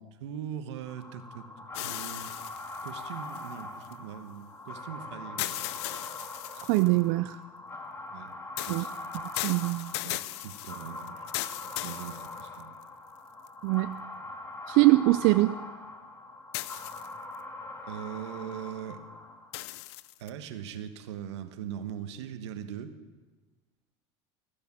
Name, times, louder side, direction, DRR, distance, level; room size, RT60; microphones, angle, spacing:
voice 1, 0.0-2.3 2.8-5.7 8.1-8.3 8.6-9.0 10.1-11.3 11.5-12.8 17.8-19.1 20.2-23.0, right 9 dB, 85° right, 10 dB, 1.3 m, -41 dB
sound 1, 0.8-19.7, left 2 dB, 20° left, 2.1 m, -42 dB
sound 2, 1.7-3.9 5.4-7.0 8.6-12.8 13.5-13.6 16.5-17.4 19.5-20.3, left 18 dB, 80° left, 0.6 m, -37 dB
voice 2, 6.6-7.4 8.7-8.8 9.4-10.0 13.6-13.9 14.7-15.6, right 20 dB, 65° right, 14 dB, 0.4 m, -23 dB
15.0 x 10.5 x 7.5 m, 1.3 s
supercardioid pair, 100°, 14 cm